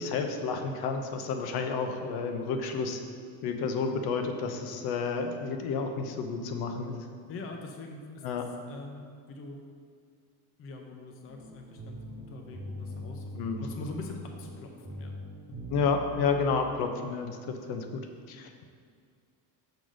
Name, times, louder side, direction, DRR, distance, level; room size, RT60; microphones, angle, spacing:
voice 1, 0.0-3.0 3.4-7.0 8.2-8.4 13.3-13.6 15.7-17.4 17.7-18.0 18.3-18.6, left 5 dB, 60° left, 5 dB, 0.8 m, -30 dB
voice 2, 7.3-9.0 9.3-9.6 10.6-15.2, left 3 dB, 35° left, 2 dB, 0.6 m, -43 dB
sound 1, 11.3-16.7, equal, 15° right, 1.8 m, -42 dB
6.7 x 4.0 x 6.2 m, 2.2 s
cardioid pair, 160°, 41 cm